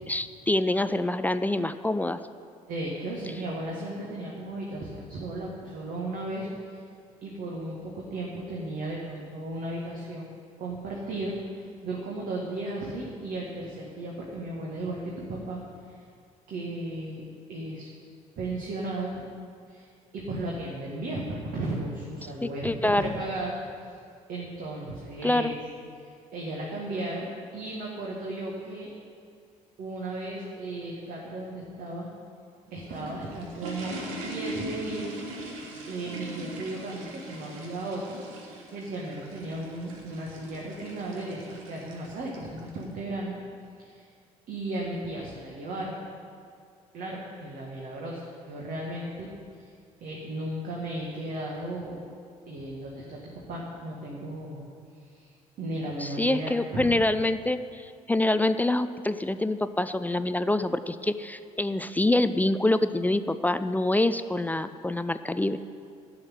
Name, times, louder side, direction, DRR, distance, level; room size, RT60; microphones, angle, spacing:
voice 1, 0.1-2.2 22.4-23.2 25.2-25.5 56.0-65.6, left 2 dB, 10° left, 11 dB, 0.4 m, -26 dB
voice 2, 2.7-6.8 7.2-10.3 10.6-16.0 16.5-17.9 18.4-19.2 19.7-19.9 20.1-23.6 23.8-24.0 24.3-25.6 26.0-27.3 27.5-28.9 29.8-32.1 32.7-35.1 35.9-38.2 38.7-43.4 43.8-44.1 44.5-46.0 46.9-49.7 50.0-52.0 52.5-54.7 55.0-56.9, right 2 dB, 50° right, -3 dB, 1.8 m, -35 dB
sound 1, 32.5-42.8, right 1 dB, 70° right, 1.4 m, -41 dB
11.5 x 6.4 x 9.1 m, 2.3 s
figure-of-eight pair, 50°, 18 cm